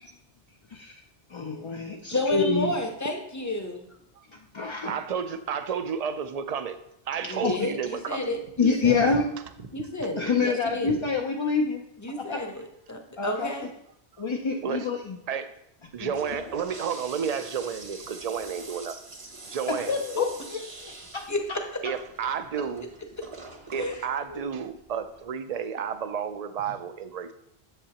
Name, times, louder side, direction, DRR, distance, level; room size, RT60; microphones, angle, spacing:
voice 1, 0.7-1.0 1.3-2.8 4.5-4.9 7.4-7.7 8.6-9.2 10.2-11.8 12.2-12.4 13.2-13.5 14.2-15.2 16.0-16.1 19.9-20.3 20.5-21.2 24.3-24.4, left 5 dB, 40° left, 1 dB, 0.4 m, -27 dB
voice 2, 2.1-3.9 7.2-9.2 9.7-11.0 12.0-13.7 20.2-20.3 21.3-21.6 23.8-24.0, left 1 dB, 20° left, 4 dB, 0.7 m, -31 dB
voice 3, 4.9-6.8 7.1-8.3 8.9-9.2 14.6-14.9 15.3-15.5 15.9-19.0 19.5-20.0 21.8-22.9 23.7-27.3, right 7 dB, 50° right, 10 dB, 0.5 m, -31 dB
Toilet flush, 15.9-25.3, right 3 dB, 35° right, 0.8 m, -45 dB
8.0 x 7.3 x 2.9 m, 0.77 s
omnidirectional pair, 1.1 m